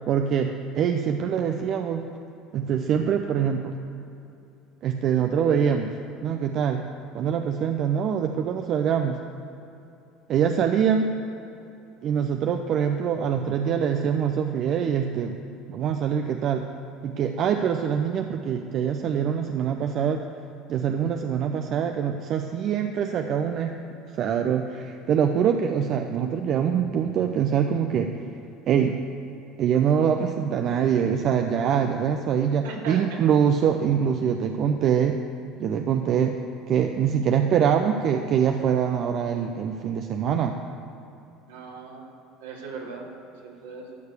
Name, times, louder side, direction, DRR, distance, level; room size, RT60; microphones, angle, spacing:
voice 1, 0.1-2.0 2.5-3.7 4.8-5.9 6.2-6.8 7.1-9.2 10.3-11.1 12.0-15.4 15.7-16.6 17.0-20.2 20.7-23.8 24.1-28.1 28.7-28.9 29.6-35.2 35.6-36.3 36.7-40.5, right 8 dB, 50° right, 5 dB, 0.7 m, -24 dB
voice 2, 32.6-33.0 41.5-42.0 42.4-44.0, right 4 dB, 80° right, -3 dB, 2.8 m, -39 dB
13.5 x 6.7 x 8.3 m, 2.9 s
hypercardioid pair, 70°, 0 cm